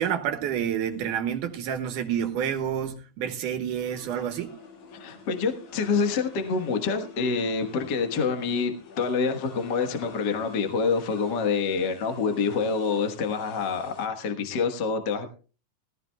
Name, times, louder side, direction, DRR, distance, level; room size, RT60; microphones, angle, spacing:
voice 1, 0.0-4.5, right 9 dB, 85° right, 2.8 m, -29 dB
sound 1, 3.8-14.1, left 5 dB, 70° left, 3.5 m, -48 dB
voice 2, 5.0-8.7 9.0-15.3, left 5 dB, 45° left, 1.4 m, -26 dB
18.0 x 15.0 x 2.3 m
omnidirectional pair, 3.6 m